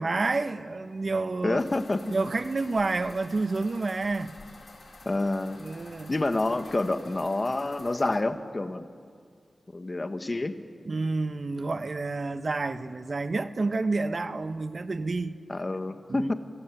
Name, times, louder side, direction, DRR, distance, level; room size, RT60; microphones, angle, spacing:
voice 1, 0.0-1.6 2.1-4.3 5.6-6.1 10.9-15.4 16.1-16.3, right 3 dB, 50° right, 11 dB, 1.2 m, -29 dB
voice 2, 1.4-2.0 5.1-5.6 6.1-8.9 9.7-10.6 15.5-16.3, left 2 dB, 35° left, 9 dB, 1.6 m, -28 dB
sound 1, 1.6-8.2, left 3 dB, 65° left, 3.9 m, -50 dB
29.5 x 22.0 x 9.2 m, 2.1 s
wide cardioid pair, 80°, 0 cm